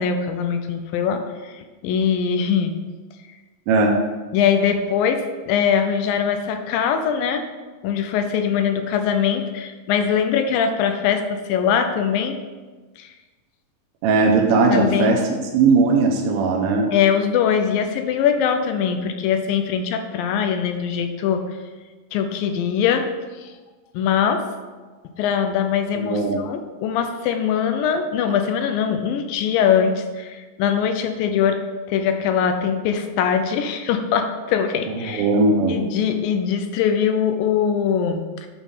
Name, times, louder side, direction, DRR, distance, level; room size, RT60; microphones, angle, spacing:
voice 1, 0.0-2.8 4.3-7.4 7.8-12.4 13.0-13.1 14.7-15.2 16.9-21.4 22.1-23.1 23.4-23.5 23.9-24.6 25.2-31.6 31.9-35.3 35.7-38.3, left 7 dB, 80° left, 6 dB, 2.3 m, -22 dB
voice 2, 14.0-16.9 26.0-26.4 35.0-35.8, right 3 dB, 80° right, 0 dB, 2.7 m, -18 dB
8.9 x 4.0 x 5.5 m, 1.3 s
omnidirectional pair, 4.3 m